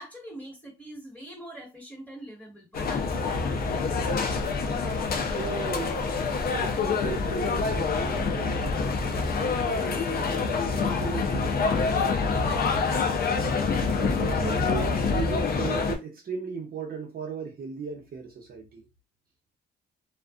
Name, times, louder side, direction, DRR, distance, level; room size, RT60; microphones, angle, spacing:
voice 1, 0.0-3.5 12.4-12.7, right 1 dB, 5° left, 1.5 m, -43 dB
sound 1, 2.7-16.0, left 4 dB, 50° left, 0.6 m, -26 dB
voice 2, 5.2-6.0 6.5-12.1 13.9-18.8, right 5 dB, 50° right, 0.8 m, -37 dB
2.4 x 2.3 x 2.4 m
cardioid pair, 90°, 20 cm